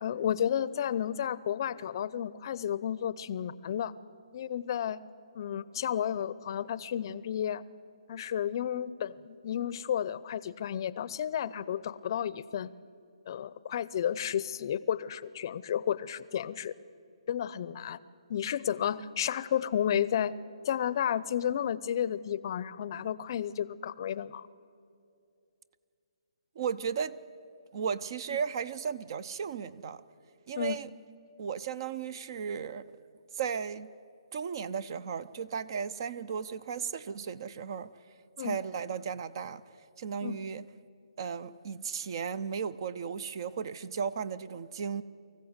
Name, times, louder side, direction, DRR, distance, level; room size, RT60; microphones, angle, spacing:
voice 1, 0.0-3.9 4.3-5.0 5.3-7.6 8.1-12.7 13.3-16.7 17.3-18.0 18.3-20.3 20.7-24.5 30.6-30.8 38.4-38.6 40.2-40.4, left 9 dB, 45° left, 0.6 m, -32 dB
voice 2, 26.6-27.2 27.7-30.0 30.5-30.9 31.4-32.9 33.3-33.9 34.3-37.9 38.4-39.6 40.0-40.7 41.2-45.0, right 6 dB, 45° right, 0.6 m, -35 dB
24.0 x 15.0 x 8.1 m
hypercardioid pair, 155°, 3 cm